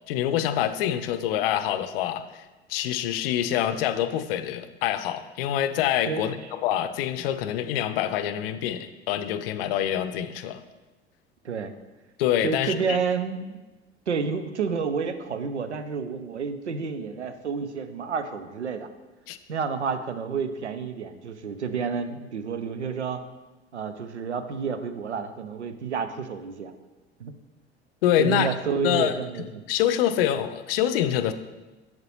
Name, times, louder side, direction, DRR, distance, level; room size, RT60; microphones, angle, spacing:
voice 1, 0.1-2.4 2.7-6.4 6.6-10.6 12.2-13.0 19.3-19.4 28.0-28.5 28.8-29.1 29.7-31.3, left 11 dB, 60° left, 11 dB, 0.5 m, -25 dB
voice 2, 6.1-6.5 11.4-11.8 12.4-13.6 14.1-18.9 19.5-23.2 23.7-26.7 27.2-27.3 28.2-29.6, right 5 dB, 85° right, 10 dB, 0.6 m, -30 dB
7.5 x 7.4 x 3.1 m, 1.1 s
figure-of-eight pair, 65°, 33 cm